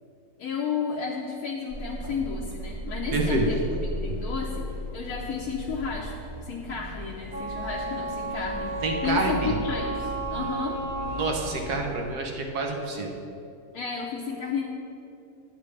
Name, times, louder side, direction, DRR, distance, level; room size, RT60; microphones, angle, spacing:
voice 1, 0.4-6.1 6.4-8.7 9.0-10.8 13.7-14.7, left 5 dB, 70° left, -2 dB, 1.2 m, -32 dB
sound 1, 1.7-12.1, right 1 dB, 35° right, 1.3 m, -36 dB
voice 2, 3.1-3.4 8.8-9.6 11.0-13.1, right 3 dB, 75° right, 1 dB, 1.5 m, -28 dB
Wind instrument woodwind instrument, 7.3-11.6, right 2 dB, 10° right, 0.8 m, -33 dB
11.0 x 8.4 x 3.2 m, 2.8 s
omnidirectional pair, 1.7 m